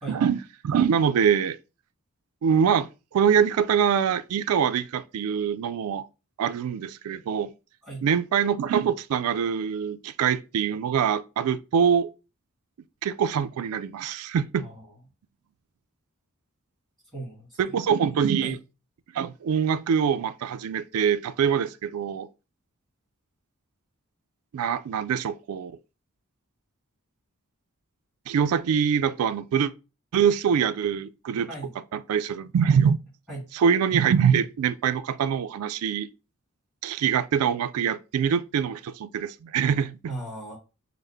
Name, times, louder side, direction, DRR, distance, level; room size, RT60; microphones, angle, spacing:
voice 1, 0.1-1.6 2.4-6.1 6.4-7.5 8.0-12.1 13.0-14.7 17.6-18.6 19.1-22.3 24.5-25.8 28.3-29.7 30.1-31.5 31.9-33.0 33.5-36.1 36.8-40.1, right 7 dB, 80° right, 0.3 m, -24 dB
voice 2, 14.6-14.9 17.1-17.8 18.4-18.6 31.5-31.7 33.3-33.5 40.1-40.6, right 2 dB, ahead, 1.8 m, -37 dB
5.3 x 2.0 x 3.4 m
head